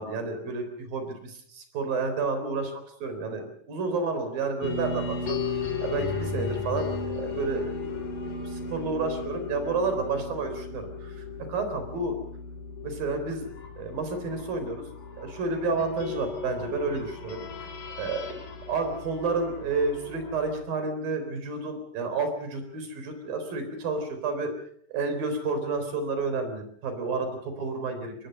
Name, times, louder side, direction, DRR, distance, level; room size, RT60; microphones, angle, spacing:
voice 1, 0.0-2.7 3.0-5.4 5.8-7.9 8.4-12.1 12.8-13.5 13.8-14.8 15.2-17.4 18.0-18.3 18.7-24.5 24.9-28.1, right 3 dB, 85° right, 7 dB, 5.7 m, -30 dB
sound 1, 4.6-20.5, left 4 dB, 65° left, 4.4 m, -35 dB
25.0 x 20.5 x 6.7 m, 0.66 s
omnidirectional pair, 4.0 m